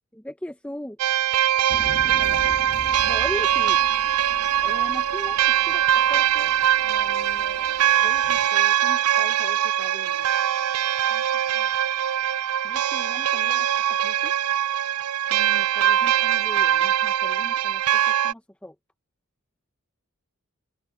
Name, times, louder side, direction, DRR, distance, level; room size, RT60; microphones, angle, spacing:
voice 1, 0.1-1.0 3.0-3.8 4.6-6.6 6.8-10.3 12.6-14.3 15.3-18.7, equal, 5° left, 0.8 m, -39 dB
sound 1, 1.0-18.3, right 11 dB, 80° right, 0.4 m, -22 dB
voice 2, 1.5-2.6 4.4-4.7 11.1-11.7 15.5-15.7, right 3 dB, 30° right, 2.6 m, -50 dB
sound 2, 1.7-8.5, left 1 dB, 25° left, 1.4 m, -41 dB
open air
head